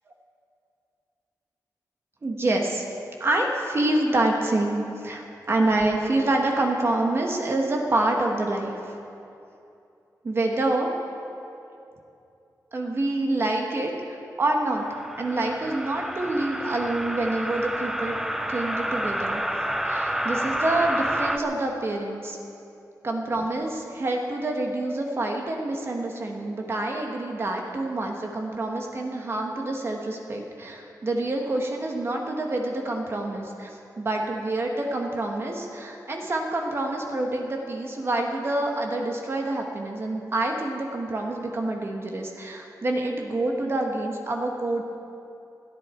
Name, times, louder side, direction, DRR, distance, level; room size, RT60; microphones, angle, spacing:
voice 1, 2.2-2.8 3.2-8.8 10.2-10.9 12.7-13.9 14.4-14.8 15.2-18.2 18.5-19.4 19.8-22.4 23.0-33.7 34.0-44.8, right 2 dB, 40° right, 1 dB, 1.5 m, -27 dB
sound 1, 14.8-21.4, right 1 dB, 5° right, 0.6 m, -29 dB
29.5 x 10.5 x 4.5 m, 2.7 s
wide cardioid pair, 165°, 7 cm